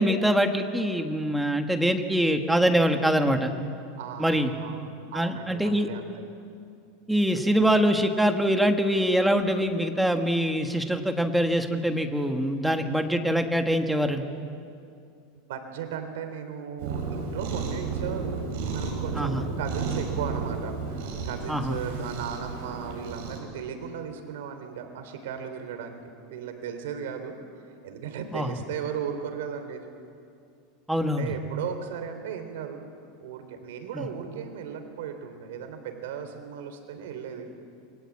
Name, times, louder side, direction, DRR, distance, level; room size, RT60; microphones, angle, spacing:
voice 1, 0.0-3.5 4.2-4.5 5.1-5.9 7.1-14.2 19.1-19.4 21.5-21.8 28.3-28.6 30.9-31.3 33.9-34.1, equal, ahead, 5 dB, 1.5 m, -24 dB
voice 2, 4.0-4.8 5.1-6.2 15.5-18.4 18.7-26.0 26.3-27.4 27.8-29.8 31.1-32.8 33.2-37.5, right 7 dB, 80° right, 7 dB, 3.5 m, -36 dB
Cat, 16.8-23.4, right 4 dB, 55° right, 6.7 m, -32 dB
28.5 x 23.0 x 8.5 m, 2.4 s
supercardioid pair, 170°, 0 cm